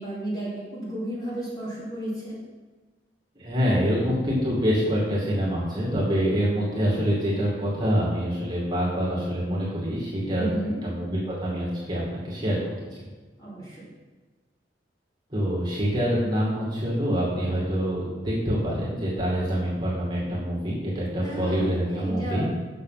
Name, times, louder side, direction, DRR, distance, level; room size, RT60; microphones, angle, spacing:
voice 1, 0.0-2.4 10.4-10.8 13.4-13.9 21.2-22.5, right 1 dB, 20° left, -8 dB, 2.8 m, -33 dB
voice 2, 3.4-10.5 10.8-12.6 15.3-22.5, equal, 25° right, -6 dB, 2.1 m, -26 dB
6.8 x 6.4 x 5.7 m, 1.3 s
head